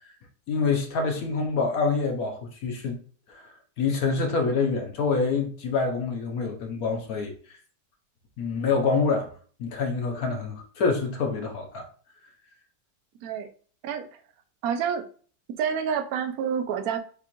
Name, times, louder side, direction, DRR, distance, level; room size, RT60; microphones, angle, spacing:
voice 1, 0.5-3.0 3.3-3.5 3.8-7.6 8.4-9.3 9.6-11.8, left 4 dB, 65° left, 1.1 m, -26 dB
voice 2, 14.6-15.0 15.6-17.0, right 7 dB, 65° right, 1.0 m, -28 dB
6.8 x 2.4 x 3.0 m
omnidirectional pair, 2.0 m